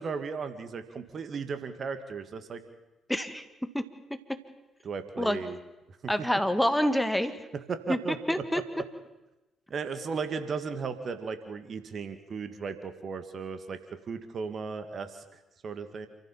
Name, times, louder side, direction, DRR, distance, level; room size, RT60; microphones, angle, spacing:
voice 1, 0.0-2.6 4.8-5.6 6.0-6.3 7.7-8.4 9.7-13.8 14.1-16.1, right 5 dB, 50° right, 9 dB, 2.1 m, -36 dB
voice 2, 3.1-3.5 3.7-3.8 5.2-5.4 6.1-7.3 7.9-8.0 8.3-8.6, equal, 5° left, 9 dB, 1.9 m, -26 dB
28.5 x 14.5 x 7.3 m, 1.0 s
figure-of-eight pair, 45°, 0 cm